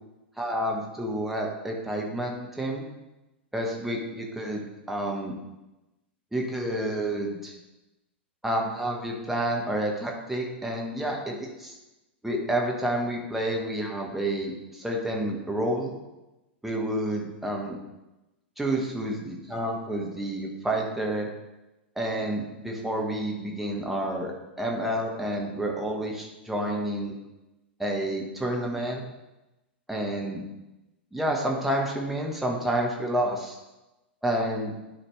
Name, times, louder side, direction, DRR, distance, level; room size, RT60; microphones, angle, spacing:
voice 1, 0.4-2.9 3.5-5.3 6.3-7.5 8.4-11.3 11.6-11.7 12.2-15.9 16.6-17.8 18.6-21.3 22.0-27.1 27.8-29.0 29.9-30.4 31.1-33.6 34.2-34.7, right 1 dB, 5° right, -1 dB, 1.3 m, -29 dB
12.0 x 4.9 x 3.3 m, 0.99 s
figure-of-eight pair, 100°, 6 cm